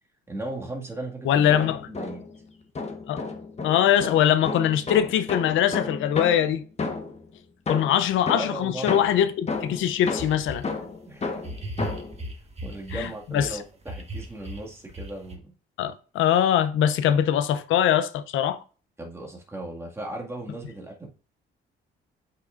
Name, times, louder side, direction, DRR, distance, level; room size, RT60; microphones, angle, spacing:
voice 1, 0.3-1.5 1.9-2.2 8.3-8.9 11.1-11.4 12.6-15.5 19.0-21.1, right 1 dB, 15° right, 2.1 m, -36 dB
voice 2, 1.3-1.8 3.1-3.2 3.6-6.6 7.7-10.6 12.9-13.5 15.8-18.6, left 10 dB, 85° left, 0.7 m, -22 dB
sound 1, 1.5-2.4 2.7-7.3 7.7-12.2, left 4 dB, 35° left, 1.4 m, -32 dB
sound 2, 9.6-9.7 10.2-10.7 11.4-13.5 13.9-15.4, right 1 dB, 30° right, 1.5 m, -36 dB
8.1 x 5.8 x 2.6 m
cardioid pair, 90°, 20 cm